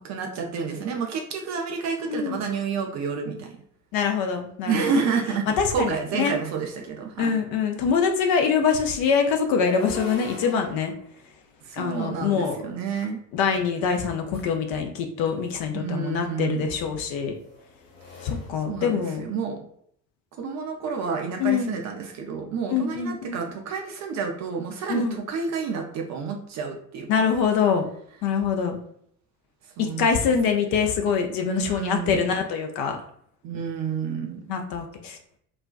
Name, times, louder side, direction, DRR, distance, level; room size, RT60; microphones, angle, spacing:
voice 1, 0.0-3.6 4.7-7.3 11.6-13.2 15.7-16.7 18.7-19.7 20.4-27.3 29.8-30.2 31.5-32.2 33.4-34.4, right 5 dB, 40° right, 2 dB, 0.4 m, -29 dB
voice 2, 2.1-2.4 3.9-5.0 5.5-6.4 7.2-10.9 11.7-12.6 13.3-17.4 18.2-19.2 21.4-21.8 22.7-23.4 24.9-25.2 27.1-27.9 28.2-28.8 29.8-33.0 34.5-35.2, left 6 dB, 50° left, 4 dB, 0.5 m, -24 dB
sound 1, 5.0-5.1 5.5-7.5 9.3-12.6 13.9-14.6 16.1-19.5, equal, 65° left, 1.1 m, -43 dB
2.4 x 2.1 x 2.4 m, 0.68 s
figure-of-eight pair, 55°, 48 cm